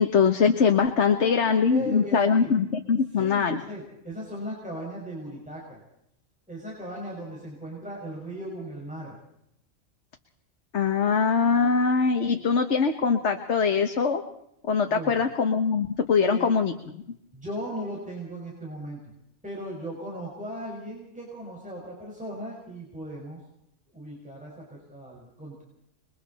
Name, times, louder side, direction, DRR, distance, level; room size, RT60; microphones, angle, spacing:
voice 1, 0.0-3.6 10.7-14.2 14.7-17.0, left 5 dB, 65° left, 5 dB, 1.5 m, -22 dB
voice 2, 1.0-2.5 3.2-5.8 6.5-9.2 14.9-15.2 16.2-16.5 17.3-19.0 19.4-23.4 23.9-25.6, equal, 5° right, -3 dB, 5.7 m, -37 dB
27.5 x 22.0 x 4.3 m, 0.77 s
omnidirectional pair, 1.3 m